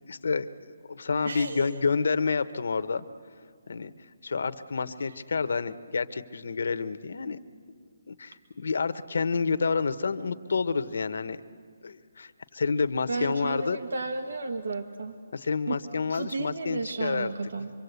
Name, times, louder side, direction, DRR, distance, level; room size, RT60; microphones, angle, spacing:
voice 1, 0.1-3.0 3.7-3.9 4.2-7.4 8.1-11.4 11.8-13.8 15.3-17.3, left 4 dB, 60° left, 12 dB, 0.9 m, -29 dB
voice 2, 1.2-1.7 13.1-15.1 15.7-15.8 16.1-17.7, right 3 dB, 80° right, 7 dB, 1.4 m, -33 dB
26.0 x 23.0 x 8.1 m, 2.1 s
hypercardioid pair, 180°, 0 cm